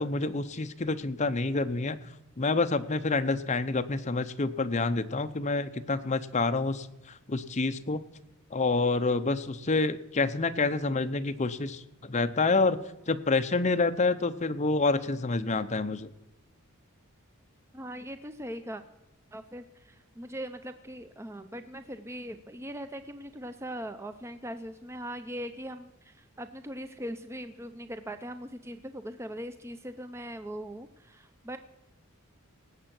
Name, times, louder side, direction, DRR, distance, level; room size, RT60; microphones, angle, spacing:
voice 1, 0.0-2.0 2.4-8.0 8.5-12.8 13.1-16.1, left 3 dB, 35° left, 10 dB, 0.7 m, -28 dB
voice 2, 17.7-18.8 19.3-31.6, equal, 15° right, 9 dB, 0.5 m, -40 dB
18.0 x 8.1 x 6.0 m, 0.97 s
head